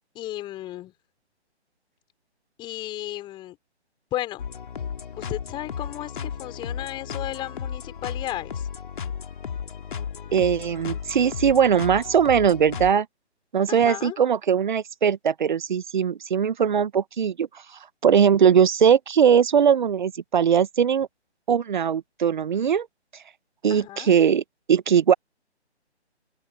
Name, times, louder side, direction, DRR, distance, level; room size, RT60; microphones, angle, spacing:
voice 1, 0.1-0.9 2.6-3.6 4.1-4.5 5.2-8.7 13.7-14.2 23.7-24.1, left 14 dB, 15° left, 5.4 m, -34 dB
sound 1, 4.4-12.9, left 7 dB, 45° left, 2.6 m, -34 dB
voice 2, 10.3-13.1 13.5-17.5 18.0-21.1 21.5-22.9 23.6-24.4 24.7-25.1, right 7 dB, 45° right, 1.1 m, -20 dB
open air
figure-of-eight pair, 140°, 34 cm